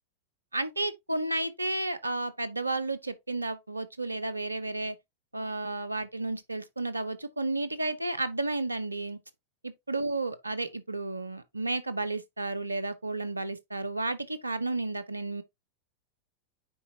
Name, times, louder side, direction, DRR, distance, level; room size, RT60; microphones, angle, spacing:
voice 1, 0.5-4.9 5.3-9.2 9.6-15.4, right 2 dB, 80° right, 0.8 m, -32 dB
9.3 x 4.0 x 2.7 m
figure-of-eight pair, 90°, 0 cm